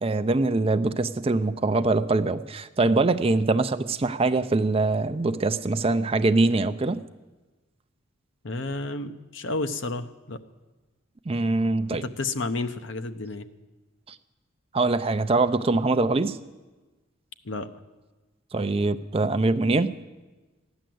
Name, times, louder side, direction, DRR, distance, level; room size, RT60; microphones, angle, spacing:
voice 1, 0.0-7.0 11.3-12.0 14.1-14.2 14.7-16.4 18.5-19.9, right 3 dB, 30° right, 11 dB, 0.5 m, -23 dB
voice 2, 8.4-10.4 11.9-13.5 17.4-17.7, left 2 dB, 65° left, 10 dB, 0.8 m, -31 dB
15.0 x 10.5 x 7.7 m, 1.2 s
head